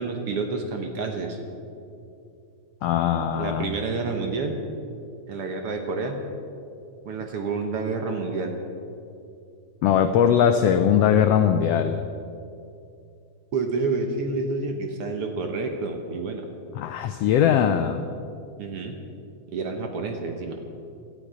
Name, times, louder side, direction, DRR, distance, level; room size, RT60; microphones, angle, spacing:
voice 1, 0.0-1.4 3.4-4.5 5.3-6.2 7.1-8.6 13.5-16.5 18.6-19.0 19.5-20.6, right 4 dB, 60° right, 4 dB, 1.7 m, -29 dB
voice 2, 2.8-3.7 9.8-12.0 16.7-18.0, left 8 dB, 90° left, 8 dB, 1.3 m, -20 dB
17.5 x 12.5 x 5.0 m, 2.6 s
omnidirectional pair, 3.5 m